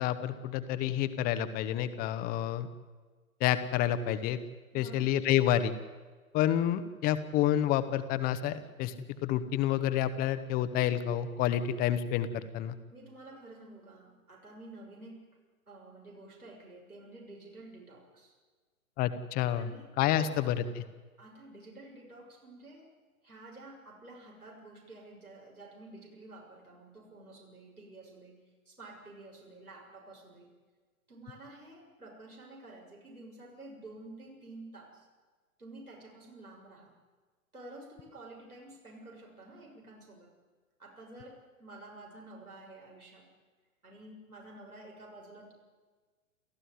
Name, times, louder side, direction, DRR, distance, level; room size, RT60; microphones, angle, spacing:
voice 1, 0.0-2.7 3.4-4.4 4.7-5.7 6.3-8.9 9.2-12.7 19.0-19.7 20.0-20.8, left 11 dB, 20° left, 12 dB, 1.3 m, -29 dB
voice 2, 4.7-5.0 7.2-7.4 12.9-15.3 15.7-18.3 19.5-19.9 20.2-20.4 21.2-22.9 23.2-30.5 31.1-35.1 35.6-36.9 37.5-40.3 40.8-43.3 43.8-45.5, right 2 dB, 90° right, -2 dB, 6.8 m, -50 dB
29.5 x 14.0 x 9.7 m, 1.4 s
figure-of-eight pair, 120°, 43 cm